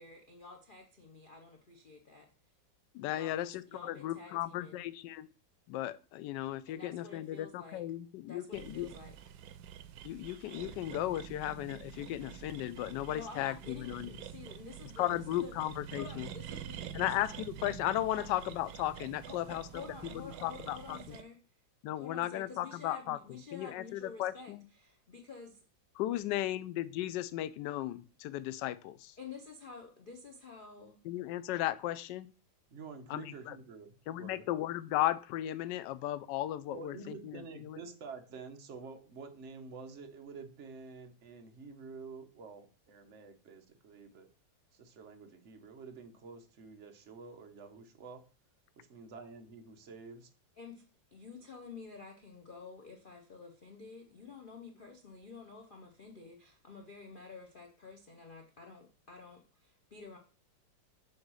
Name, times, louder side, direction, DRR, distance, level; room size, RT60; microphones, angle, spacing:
voice 1, 0.0-2.3 3.1-4.8 6.7-7.8 8.2-9.2 13.1-17.4 18.1-18.2 19.2-21.4 21.9-25.6 26.1-26.5 29.2-31.0 50.6-50.8 51.1-60.2, left 4 dB, 50° left, 3 dB, 0.6 m, -50 dB
voice 2, 2.9-3.5 3.8-5.3 5.7-8.9 10.0-14.1 15.0-16.3 16.9-19.6 20.4-21.0 21.8-23.2 23.5-24.6 26.0-28.9 31.1-32.3 33.1-33.5 34.1-37.4 37.6-37.8, left 14 dB, 75° left, 14 dB, 1.1 m, -35 dB
sound 1, 8.5-21.2, right 10 dB, 85° right, 1.4 m, -47 dB
voice 3, 32.7-34.5 36.7-44.3 44.7-48.2 48.8-50.3, right 4 dB, 45° right, 5 dB, 1.1 m, -49 dB
7.2 x 3.1 x 6.1 m, 0.36 s
omnidirectional pair, 2.1 m